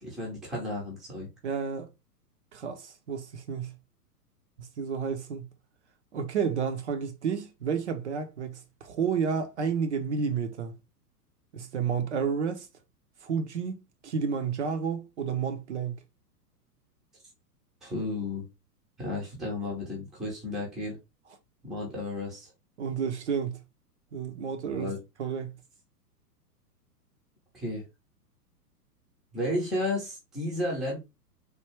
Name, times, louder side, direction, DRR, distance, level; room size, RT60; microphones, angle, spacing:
voice 1, 0.0-1.3 17.8-18.5 19.0-21.0 21.6-22.5 24.7-25.0 27.5-27.8 29.3-31.0, left 1 dB, ahead, 0.5 m, -33 dB
voice 2, 1.4-1.9 2.5-3.7 4.6-5.4 6.1-10.7 11.5-12.7 13.2-16.0 22.8-23.6 24.1-24.9 25.2-25.5, right 6 dB, 45° right, 0.5 m, -31 dB
3.3 x 2.2 x 3.1 m
figure-of-eight pair, 105°, 48 cm